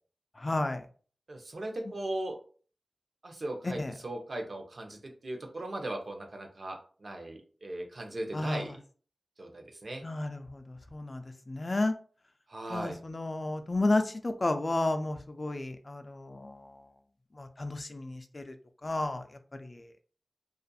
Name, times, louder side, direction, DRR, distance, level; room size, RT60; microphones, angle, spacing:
voice 1, 0.4-0.9 3.8-3.9 8.3-8.6 10.0-12.0 12.7-16.7 17.4-18.5 18.8-19.2 19.6-19.9, left 2 dB, 40° left, 7 dB, 0.3 m, -32 dB
voice 2, 1.3-2.4 3.2-8.8 9.4-10.0 12.5-13.0, right 1 dB, 60° right, 3 dB, 0.6 m, -38 dB
2.4 x 2.2 x 2.6 m, 0.41 s
wide cardioid pair, 60°, 0 cm